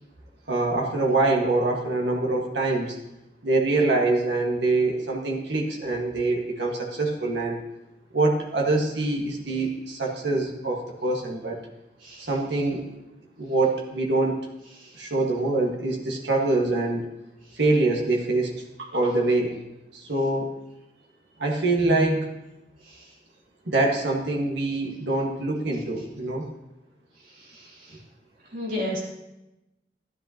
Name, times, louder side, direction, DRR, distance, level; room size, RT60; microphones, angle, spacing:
voice 1, 0.5-3.0 3.4-7.6 8.1-11.6 12.2-12.9 13.4-14.5 14.9-17.1 17.5-19.6 19.9-20.6 21.4-22.3 23.6-26.4, right 2 dB, 85° right, 0 dB, 1.6 m, -24 dB
voice 2, 28.5-29.0, left 1 dB, 50° right, -5 dB, 3.0 m, -31 dB
13.0 x 10.5 x 2.9 m, 0.96 s
head